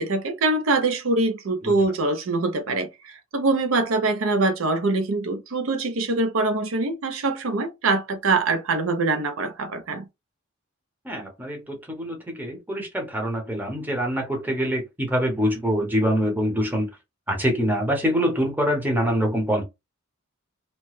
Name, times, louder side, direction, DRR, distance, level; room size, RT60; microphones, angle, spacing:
voice 1, 0.0-10.0, right 3 dB, 80° right, 0.6 m, -24 dB
voice 2, 11.0-16.9 17.3-19.6, equal, 10° right, 0.8 m, -25 dB
2.9 x 2.1 x 3.1 m
head